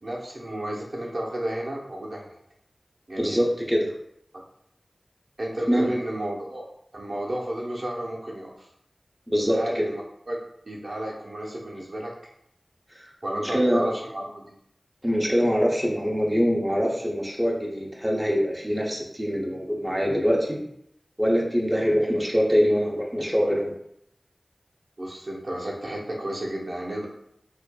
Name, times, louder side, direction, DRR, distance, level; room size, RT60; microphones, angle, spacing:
voice 1, 0.0-2.4 3.1-3.4 4.3-4.4 5.4-6.6 6.9-8.7 9.5-10.4 10.7-12.1 13.2-14.5 25.0-27.1, right 1 dB, 55° right, -3 dB, 0.8 m, -32 dB
voice 2, 3.2-3.9 5.7-5.9 9.3-9.8 12.9-13.8 15.0-20.6 21.2-23.7, equal, 5° right, -2 dB, 0.7 m, -24 dB
4.5 x 2.6 x 2.3 m, 0.73 s
wide cardioid pair, 65°, 0 cm